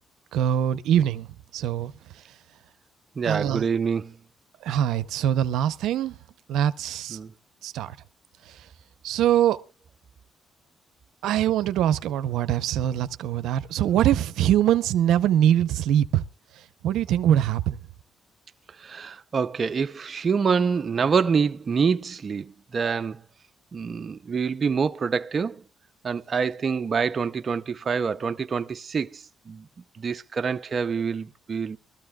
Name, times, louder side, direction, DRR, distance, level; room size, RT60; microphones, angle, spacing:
voice 1, 0.3-1.3 1.5-1.9 3.2-3.7 4.6-6.1 6.5-7.2 7.6-8.0 9.0-9.6 11.2-16.2 16.8-17.8, right 11 dB, 85° right, 0.6 m, -23 dB
voice 2, 3.2-4.2 7.1-7.3 18.8-23.2 23.7-25.6 26.0-29.7 30.0-31.8, right 6 dB, 40° right, 0.6 m, -26 dB
22.0 x 13.5 x 2.3 m
cardioid pair, 90°, 0 cm